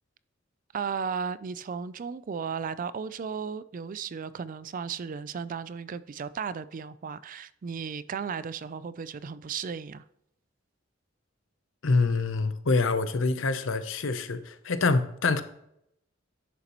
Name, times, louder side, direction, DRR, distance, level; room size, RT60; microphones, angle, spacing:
voice 1, 0.7-10.0, right 6 dB, 45° right, 0.4 m, -35 dB
voice 2, 11.8-15.4, left 3 dB, 80° left, 0.7 m, -26 dB
10.5 x 6.9 x 3.0 m
head